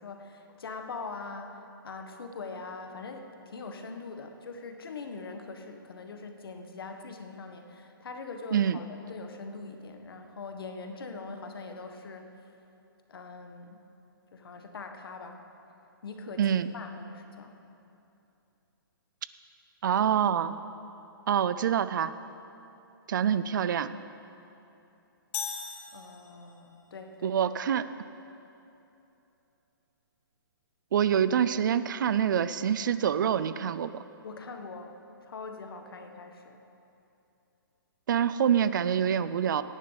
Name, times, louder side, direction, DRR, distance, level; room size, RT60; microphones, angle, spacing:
voice 1, 0.0-12.3 13.1-13.9 14.3-15.4 16.0-17.5 25.9-27.4 34.2-36.6, left 4 dB, 80° left, 5 dB, 1.4 m, -42 dB
voice 2, 16.4-16.7 19.8-20.6 21.3-22.1 23.1-23.9 27.2-27.9 30.9-34.0 38.1-39.6, right 8 dB, 60° right, 14 dB, 0.5 m, -26 dB
sound 1, 25.3-26.7, left 7 dB, 35° left, 1.2 m, -38 dB
17.5 x 10.0 x 4.0 m, 2.8 s
hypercardioid pair, 160°, 12 cm